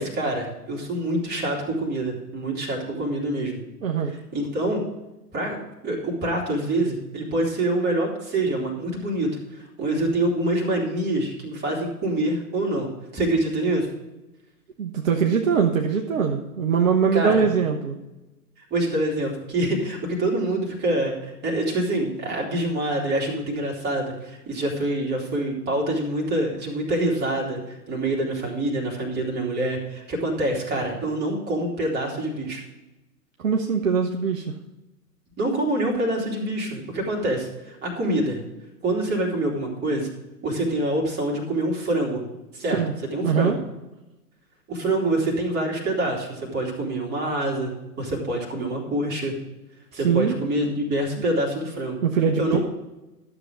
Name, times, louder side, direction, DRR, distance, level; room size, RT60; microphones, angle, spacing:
voice 1, 0.0-3.6 4.3-4.8 5.3-13.9 17.1-17.5 18.7-27.6 27.9-32.6 35.4-38.4 38.8-40.1 40.4-42.2 42.5-42.8 43.1-43.5 44.7-49.3 49.9-52.0 52.4-52.6, right 1 dB, 20° right, -2 dB, 3.0 m, -26 dB
voice 2, 3.8-4.1 14.8-18.0 33.4-34.6 42.7-42.9 43.2-43.6 49.9-50.4 52.0-52.6, right 6 dB, 55° right, 2 dB, 1.2 m, -22 dB
12.5 x 7.1 x 5.0 m, 0.99 s
figure-of-eight pair, 110°, 47 cm